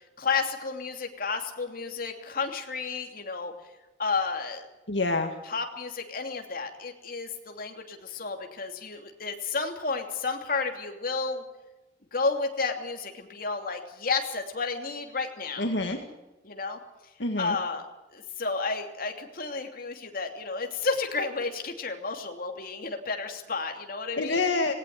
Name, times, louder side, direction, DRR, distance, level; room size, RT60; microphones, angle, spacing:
voice 1, 0.2-3.5 4.0-4.6 5.5-11.4 12.1-15.6 16.4-16.8 17.4-17.8 18.1-24.4, left 4 dB, 50° left, 4 dB, 2.9 m, -31 dB
voice 2, 4.9-5.4 15.6-16.0 17.2-17.6 24.2-24.7, left 2 dB, 70° left, 4 dB, 2.0 m, -27 dB
18.5 x 18.5 x 9.6 m, 1.0 s
head